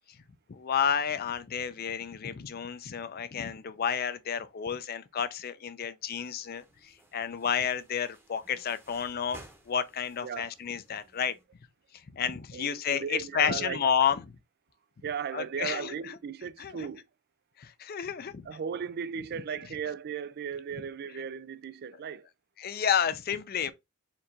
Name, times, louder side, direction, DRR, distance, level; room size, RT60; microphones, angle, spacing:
voice 1, 0.5-9.4 9.7-11.4 12.1-14.2 15.3-15.9 16.6-16.9 17.6-18.4 22.6-23.7, left 8 dB, 45° left, 0.5 m, -31 dB
sound 1, 6.1-11.4, right 1 dB, 10° right, 0.9 m, -56 dB
voice 2, 10.2-10.5 12.5-13.8 15.0-17.1 18.4-22.3, right 7 dB, 50° right, 0.3 m, -36 dB
4.4 x 2.5 x 3.8 m
head